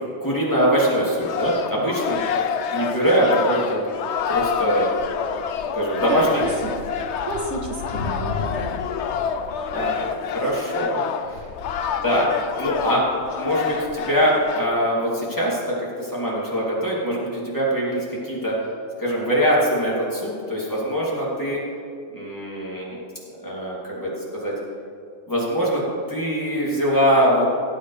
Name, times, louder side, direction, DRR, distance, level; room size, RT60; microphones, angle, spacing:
voice 1, 0.2-2.2 2.7-3.8 4.3-4.9 5.7-6.4 9.7-11.0 11.3-11.4 12.0-12.3 12.6-13.0 13.4-18.5 19.0-21.6 22.1-23.0 23.4-24.5 25.3-27.5, equal, 15° left, -7 dB, 2.9 m, -23 dB
sound 1, 1.2-14.7, left 7 dB, 75° left, 0.9 m, -27 dB
voice 2, 6.0-6.7 7.2-8.8, right 2 dB, 80° right, 1 dB, 1.6 m, -30 dB
17.5 x 8.3 x 3.3 m, 2.4 s
omnidirectional pair, 1.2 m